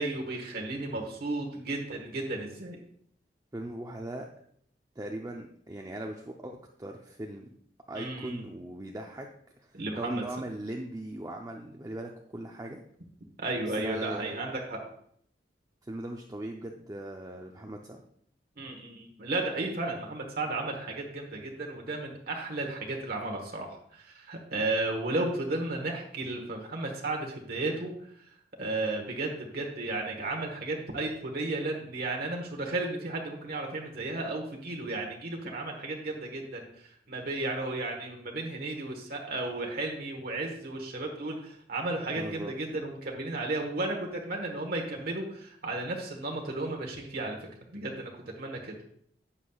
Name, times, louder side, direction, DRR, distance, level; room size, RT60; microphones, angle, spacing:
voice 1, 0.0-2.8 7.9-8.4 9.7-10.2 13.4-14.8 18.6-27.9 28.6-48.1 48.4-48.7, right 2 dB, 60° right, 1 dB, 1.3 m, -34 dB
voice 2, 3.5-4.3 5.0-7.5 7.9-9.3 9.7-12.8 13.8-14.4 15.9-18.0 42.1-42.5, right 1 dB, 20° right, 1 dB, 0.6 m, -39 dB
11.0 x 8.2 x 2.4 m, 0.66 s
head